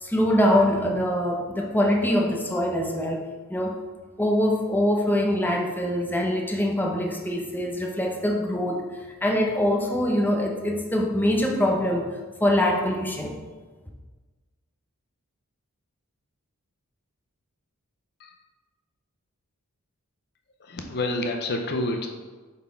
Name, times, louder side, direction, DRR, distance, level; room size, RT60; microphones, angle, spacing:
voice 1, 0.0-3.2 3.5-3.8 4.2-8.8 9.2-12.2 12.4-13.3, left 1 dB, 10° left, 0 dB, 0.8 m, -23 dB
voice 2, 20.6-22.1, left 2 dB, 50° left, 3 dB, 0.6 m, -28 dB
7.2 x 4.2 x 4.4 m, 1.3 s
head